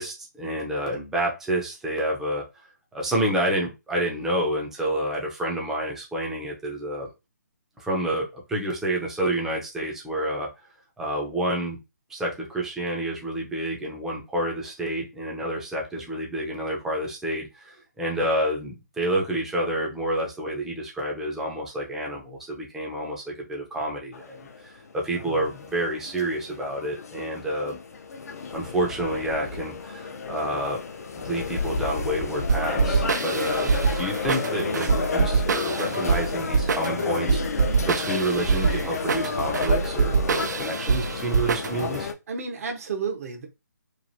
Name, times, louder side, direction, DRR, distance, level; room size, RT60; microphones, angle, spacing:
voice 1, 0.0-2.4 2.9-7.1 7.8-10.5 11.0-11.8 12.1-27.8 28.5-30.8 31.1-42.1, right 1 dB, 5° right, 0.5 m, -29 dB
sound 1, 24.1-42.1, left 5 dB, 55° left, 0.5 m, -31 dB
sound 2, 32.5-42.0, right 5 dB, 70° right, 0.3 m, -24 dB
voice 2, 42.3-43.5, right 5 dB, 55° right, 0.8 m, -32 dB
3.1 x 2.5 x 2.6 m
hypercardioid pair, 155°, 10 cm